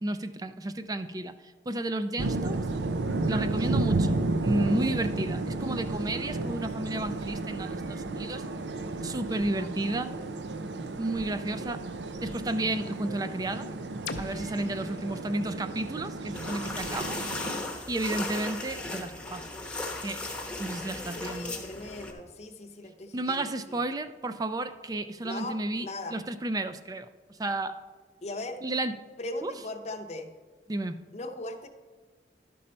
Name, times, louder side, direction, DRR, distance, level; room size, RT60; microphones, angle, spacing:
voice 1, 0.0-1.3 1.7-2.6 3.2-8.4 9.0-10.1 11.0-11.8 12.2-13.7 14.2-17.2 17.9-19.5 20.0-20.2 20.6-21.5 23.1-27.1 27.4-27.8 28.6-29.0 29.4-29.5 30.7-31.0, right 2 dB, 20° right, 11 dB, 0.4 m, -32 dB
sound 1, 2.2-17.5, right 2 dB, 75° right, 0.5 m, -32 dB
sound 2, 14.1-17.9, left 4 dB, 80° left, 0.5 m, -45 dB
sound 3, 16.3-22.1, left 2 dB, 5° left, 0.9 m, -36 dB
voice 2, 21.1-23.8 25.2-26.2 28.2-28.6 29.2-30.3 31.1-31.7, left 2 dB, 40° left, 6 dB, 0.7 m, -39 dB
12.0 x 5.4 x 4.3 m, 1.3 s
head